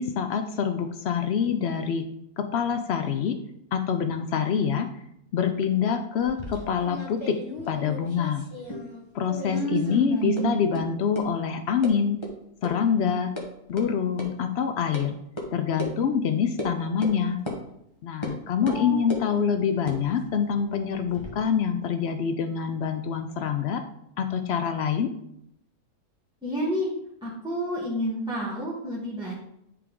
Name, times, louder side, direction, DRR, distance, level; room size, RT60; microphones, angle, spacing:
voice 1, 0.0-2.0 2.4-3.4 3.7-4.9 5.3-7.4 7.7-8.5 9.1-12.2 12.6-13.3 13.7-15.2 15.5-17.4 18.0-23.8 24.2-25.1, left 7 dB, 80° left, 7 dB, 0.5 m, -26 dB
sound 1, 6.2-9.0 9.3-10.0 10.4-10.5 10.7-10.8 11.1-11.2 11.8-11.9 12.2-12.3 12.6-12.7 13.1-13.4 13.8-13.9 14.2-14.3 14.9-15.0 15.4-15.5 15.8-15.9 16.6-16.7 17.0-17.2 17.5-17.6 18.2-18.4 18.7-19.3 19.8-21.3, left 1 dB, 25° left, 0.8 m, -36 dB
voice 2, 9.5-10.6 18.6-19.1 20.3-20.6 26.4-26.9 27.2-29.3, right 1 dB, 5° right, -8 dB, 1.3 m, -29 dB
9.8 x 3.4 x 3.6 m, 0.77 s
omnidirectional pair, 1.6 m